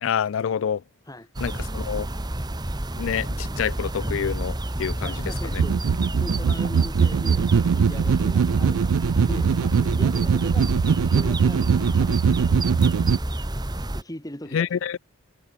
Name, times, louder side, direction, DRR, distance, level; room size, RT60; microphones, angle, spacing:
voice 1, 0.0-0.8 1.4-2.1 3.0-5.1 5.5-5.6 14.5-15.0, left 8 dB, 65° left, 0.3 m, -27 dB
sound 1, 1.3-14.0, right 1 dB, 20° right, 1.1 m, -29 dB
voice 2, 5.0-5.8 6.2-8.9 9.3-10.7 11.1-12.7 13.9-14.8, left 1 dB, 15° left, 2.5 m, -40 dB
sound 2, 5.6-13.2, right 6 dB, 80° right, 0.4 m, -21 dB
head